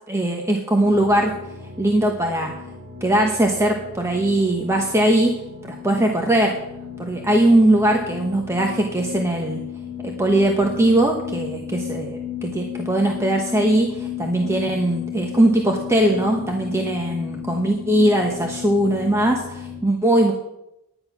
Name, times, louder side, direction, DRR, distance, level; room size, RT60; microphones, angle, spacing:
voice 1, 0.1-1.3 1.8-2.5 3.0-5.3 5.6-6.6 7.0-9.6 10.0-20.3, right 1 dB, 15° right, 1 dB, 1.0 m, -20 dB
sound 1, 0.8-19.8, left 9 dB, 70° right, 5.1 m, -34 dB
10.5 x 9.9 x 5.9 m, 0.88 s
head